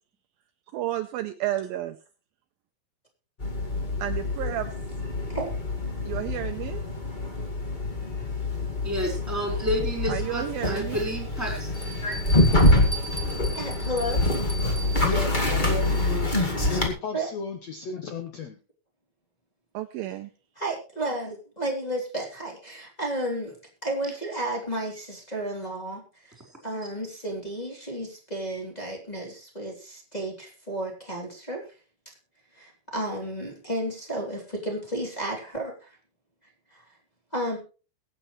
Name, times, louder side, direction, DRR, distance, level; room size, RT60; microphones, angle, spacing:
voice 1, 0.7-2.0 4.0-4.7 6.0-6.8 10.1-11.0 19.7-20.3, right 13 dB, 80° right, 8 dB, 2.2 m, -31 dB
sound 1, 3.4-16.9, left 1 dB, 25° left, 0.9 m, -26 dB
voice 2, 8.8-11.7, equal, 5° right, 1 dB, 4.3 m, -30 dB
Bell, 11.7-16.3, equal, 45° left, 0.5 m, -39 dB
voice 3, 13.5-14.2 17.1-17.3 20.6-23.5 23.8-26.3 26.6-31.6 32.6-35.9 36.7-36.8 37.3-37.6, right 1 dB, 10° left, -2 dB, 2.5 m, -32 dB
voice 4, 15.0-16.3 16.7-18.6, left 5 dB, 80° left, 6 dB, 1.5 m, -33 dB
22.5 x 8.8 x 3.2 m, 0.34 s
omnidirectional pair, 4.7 m